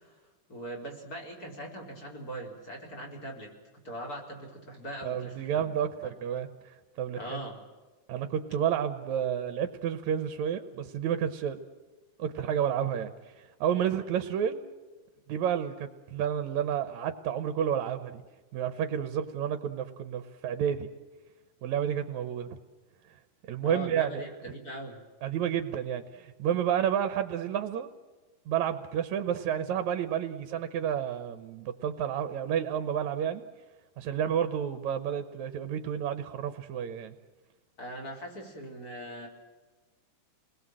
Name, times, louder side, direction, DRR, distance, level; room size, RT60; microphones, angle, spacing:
voice 1, 0.0-5.7 6.0-6.1 7.2-7.6 23.6-25.0 37.8-39.3, right 1 dB, 30° left, 1 dB, 4.6 m, -41 dB
voice 2, 5.0-7.4 8.1-11.6 12.2-14.6 15.3-18.2 18.5-20.9 21.6-22.6 23.5-24.2 25.2-27.9 28.5-33.4 34.0-37.1, right 9 dB, 70° right, 9 dB, 2.3 m, -30 dB
29.0 x 20.5 x 7.7 m, 1.3 s
omnidirectional pair, 3.6 m